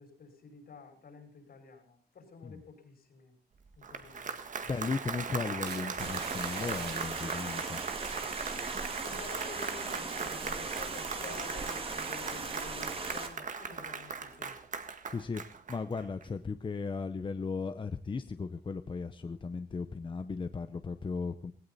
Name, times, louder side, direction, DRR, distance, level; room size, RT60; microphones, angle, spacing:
voice 1, 0.0-3.4 3.8-4.4 9.0-14.6, left 4 dB, 65° left, 6 dB, 5.8 m, -50 dB
Applause, 3.7-16.2, right 5 dB, 50° right, 1.7 m, -39 dB
voice 2, 4.6-7.8 15.1-15.4 15.7-21.5, left 4 dB, 30° left, 10 dB, 0.8 m, -36 dB
sound 1, 5.7-9.4 9.7-10.0 10.5-10.8, right 7 dB, 80° right, 1.5 m, -48 dB
sound 2, 6.0-13.3, right 3 dB, 35° right, 2.1 m, -39 dB
19.0 x 17.5 x 4.1 m, 0.37 s
wide cardioid pair, 160°, 17 cm